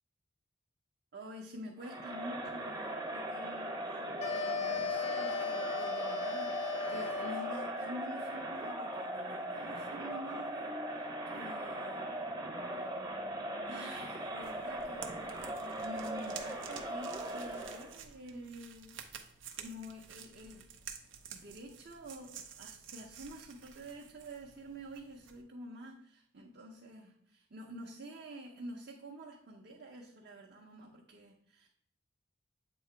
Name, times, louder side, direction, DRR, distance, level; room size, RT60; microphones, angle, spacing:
voice 1, 1.1-12.1 12.7-12.9 13.6-20.6 21.3-31.7, equal, 55° right, -2 dB, 0.7 m, -48 dB
Crowd, 1.8-18.0, right 1 dB, 20° right, 0.7 m, -39 dB
sound 1, 4.2-7.7, left 5 dB, 35° left, 0.4 m, -36 dB
sound 2, 14.4-25.4, right 7 dB, 90° right, 0.7 m, -51 dB
7.8 x 2.9 x 4.5 m, 0.66 s
head